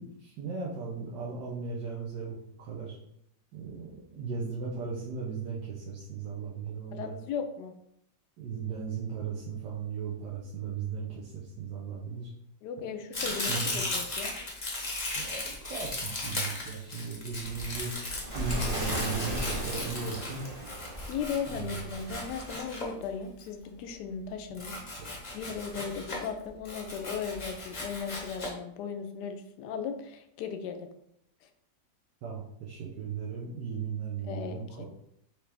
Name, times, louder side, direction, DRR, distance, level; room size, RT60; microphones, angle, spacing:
voice 1, 0.0-2.9 3.5-7.1 8.4-12.3 13.2-13.8 15.1-17.9 18.3-20.4 21.5-21.8 32.2-34.9, right 5 dB, 75° right, -4 dB, 1.4 m, -37 dB
voice 2, 6.9-7.7 12.6-14.3 21.1-25.1 25.3-30.9 34.2-34.9, left 6 dB, 75° left, 7 dB, 1.1 m, -37 dB
Domestic sounds home sounds, 13.1-23.4 24.5-26.3 26.6-28.5, left 2 dB, 35° left, 0.7 m, -36 dB
Waves surf, 17.4-22.6, right 1 dB, 30° right, 0.6 m, -37 dB
4.9 x 2.9 x 3.3 m, 0.73 s
omnidirectional pair, 2.0 m